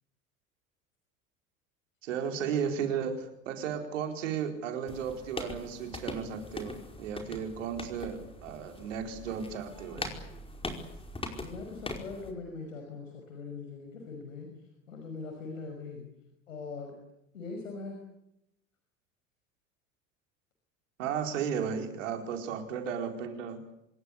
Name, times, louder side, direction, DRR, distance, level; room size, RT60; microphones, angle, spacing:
voice 1, 2.0-10.1 21.0-23.6, right 7 dB, 70° right, 5 dB, 4.6 m, -34 dB
sound 1, 4.9-12.3, left 2 dB, 15° left, 5.0 m, -41 dB
voice 2, 11.4-14.5 14.9-16.0 16.5-17.0 17.3-18.0, left 4 dB, 75° left, 3 dB, 5.8 m, -41 dB
26.0 x 21.5 x 8.4 m, 0.84 s
figure-of-eight pair, 70°, 39 cm